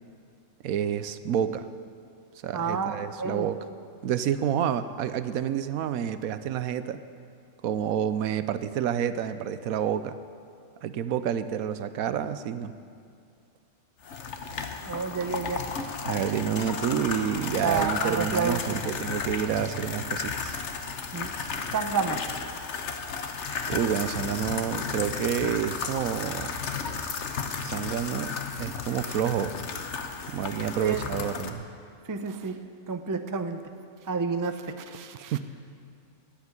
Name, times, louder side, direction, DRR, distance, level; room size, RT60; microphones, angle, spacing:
voice 1, 0.6-1.7 2.4-3.6 4.0-7.0 7.6-10.2 10.8-12.7 16.0-20.5 23.7-26.6 27.6-29.6 30.3-31.6 35.3-35.4, right 9 dB, 80° right, 12 dB, 1.1 m, -29 dB
voice 2, 2.5-3.5 14.9-15.6 17.6-18.9 21.1-21.3 21.7-22.2 30.8-31.0 32.1-32.6 32.9-33.6 34.1-35.4, right 5 dB, 25° right, 7 dB, 0.4 m, -30 dB
sound 1, 14.0-31.5, left 5 dB, 55° left, 1.2 m, -34 dB
13.0 x 9.2 x 9.6 m, 2.3 s
omnidirectional pair, 1.5 m